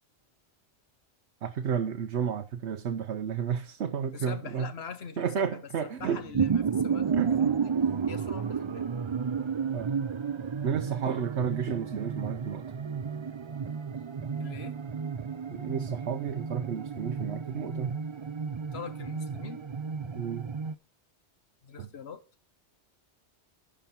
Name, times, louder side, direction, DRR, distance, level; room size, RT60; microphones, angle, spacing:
voice 1, 1.4-4.7 5.2-6.2 7.1-7.5 9.7-10.0 10.6-12.7 15.5-18.0 20.2-20.5 21.8-21.9, right 7 dB, 80° right, 1.1 m, -32 dB
voice 2, 4.1-7.7 8.1-8.9 14.4-14.8 18.7-19.7 21.6-22.2, left 6 dB, 65° left, 1.3 m, -43 dB
sound 1, 6.0-20.7, right 6 dB, 45° right, 0.4 m, -32 dB
11.5 x 7.3 x 4.3 m
omnidirectional pair, 1.1 m